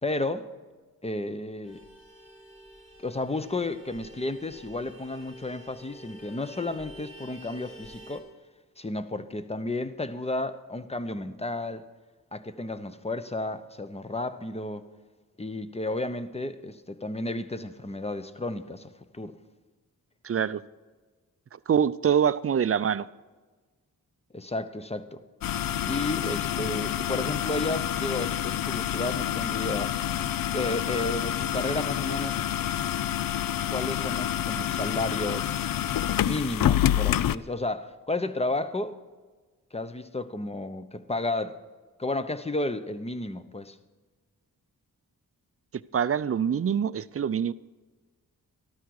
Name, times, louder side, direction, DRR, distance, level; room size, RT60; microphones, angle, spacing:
voice 1, 0.0-0.5 1.0-1.8 3.0-8.2 8.8-11.8 12.3-14.8 15.4-19.4 24.3-25.2 25.9-30.0 30.5-32.5 33.7-35.7 36.2-39.0 39.7-41.6 42.0-43.8, left 2 dB, 15° left, 0.9 m, -32 dB
Vehicle horn car horn honking, 1.6-8.2, equal, 35° left, 5.1 m, -48 dB
voice 2, 20.2-20.6 21.7-23.1 45.7-47.5, right 8 dB, 40° right, 0.5 m, -25 dB
sound 1, 25.4-37.3, left 11 dB, 70° left, 0.5 m, -28 dB
13.0 x 13.0 x 4.8 m
cardioid pair, 65°, 36 cm